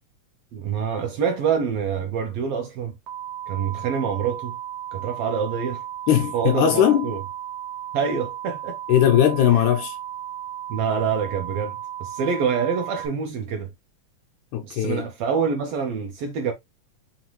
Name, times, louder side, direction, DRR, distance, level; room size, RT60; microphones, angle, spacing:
voice 1, 0.5-2.9 3.5-4.6 4.9-5.8 6.3-7.2 7.9-8.8 10.7-13.7 14.6-16.5, right 6 dB, 80° right, 1.4 m, -26 dB
sound 1, 3.1-13.1, right 10 dB, 60° right, 1.4 m, -35 dB
voice 2, 6.1-7.1 8.9-10.0 14.5-15.1, left 10 dB, 80° left, 1.9 m, -19 dB
5.6 x 2.6 x 3.0 m
omnidirectional pair, 3.5 m